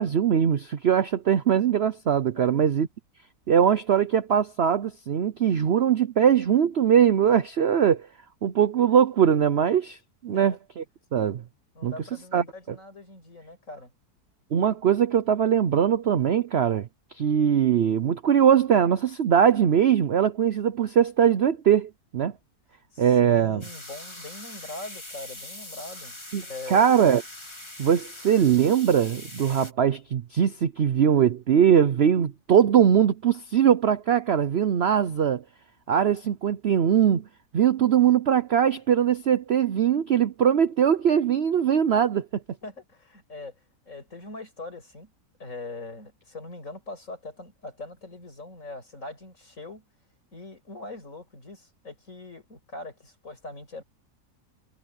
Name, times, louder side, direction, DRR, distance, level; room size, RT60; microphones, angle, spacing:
voice 1, 0.0-2.9 3.5-8.1 8.4-10.0 10.2-10.8 11.1-11.4 11.8-11.9 12.3-12.8 14.5-16.9 17.2-22.3 23.0-23.6 26.3-27.2 27.8-35.4 35.9-37.2 37.5-42.3, right 8 dB, 55° right, 0.7 m, -21 dB
voice 2, 10.3-10.6 11.7-13.9 22.9-26.8 37.8-37.9 42.6-43.5 43.9-45.1 45.4-49.8 50.3-53.8, left 2 dB, 50° left, 6.4 m, -41 dB
sound 1, 23.6-29.7, left 1 dB, 15° left, 3.0 m, -42 dB
omnidirectional pair, 1.8 m